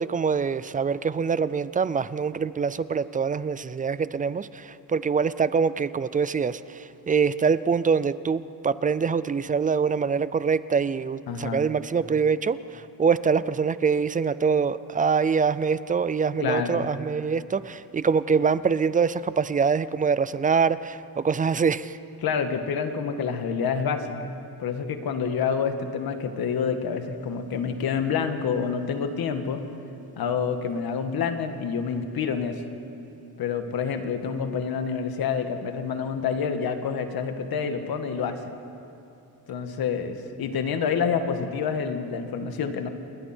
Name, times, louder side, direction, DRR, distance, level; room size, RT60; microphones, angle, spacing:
voice 1, 0.0-22.0, right 5 dB, 20° right, 16 dB, 0.4 m, -24 dB
voice 2, 11.3-11.6 16.4-16.9 22.2-24.3 24.6-29.6 30.2-32.6 33.4-38.4 39.5-42.9, left 6 dB, 70° left, 7 dB, 1.8 m, -28 dB
29.0 x 21.0 x 4.5 m, 2.9 s
cardioid pair, 145°, 37 cm